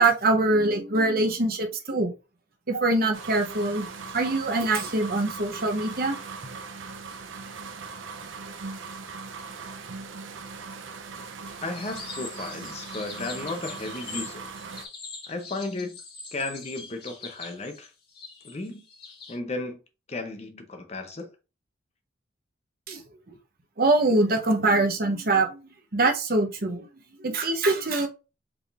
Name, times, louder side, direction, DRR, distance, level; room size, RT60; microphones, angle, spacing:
voice 1, 0.0-2.1 2.7-3.9 4.1-6.2 22.9-23.0 23.3-23.4 23.8-25.6 25.9-26.9 27.2-28.1, right 2 dB, 50° right, 0.9 m, -23 dB
sound 1, 3.1-14.9, right 4 dB, 90° right, 0.6 m, -39 dB
voice 2, 11.6-14.5 15.3-16.0 16.3-17.9 18.4-18.8 19.3-19.8 20.1-21.3, left 2 dB, 35° left, 0.7 m, -34 dB
sound 2, 11.7-19.4, left 4 dB, 55° left, 1.5 m, -42 dB
4.6 x 3.5 x 2.5 m
head